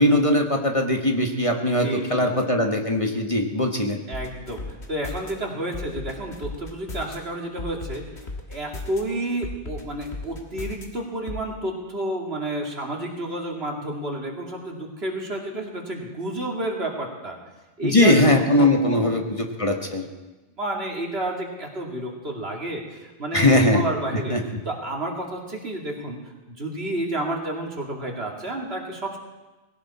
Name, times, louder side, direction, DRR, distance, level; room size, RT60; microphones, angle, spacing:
voice 1, 0.0-4.0 17.8-20.1 23.3-23.8 24.1-24.4, left 1 dB, 30° left, 3 dB, 1.5 m, -20 dB
voice 2, 1.7-2.3 4.1-8.1 8.5-17.4 17.8-19.2 20.6-24.4 24.6-26.2 26.5-29.2, right 1 dB, 70° right, 0 dB, 2.7 m, -30 dB
sound 1, 4.1-5.3 5.7-7.2 7.6-9.0 9.4-10.9 11.3-11.4, left 3 dB, 80° left, 2.2 m, -35 dB
20.0 x 17.0 x 4.2 m, 1.1 s
omnidirectional pair, 1.1 m